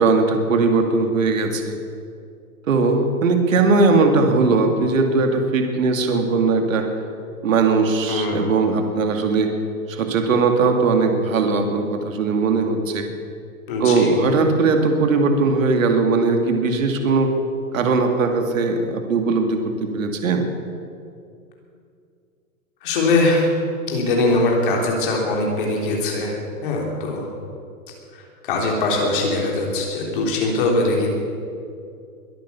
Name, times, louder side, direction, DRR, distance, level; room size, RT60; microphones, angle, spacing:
voice 1, 0.0-1.8 2.7-6.9 7.4-9.5 9.9-13.1 13.8-17.3 17.7-20.5, right 4 dB, 60° right, 5 dB, 2.3 m, -19 dB
voice 2, 8.1-8.4 13.7-14.1 22.8-23.5 23.9-26.3 26.6-27.3 28.4-31.1, left 2 dB, 35° left, 0 dB, 3.3 m, -21 dB
22.0 x 9.1 x 7.1 m, 2.4 s
hypercardioid pair, 175°, 45 cm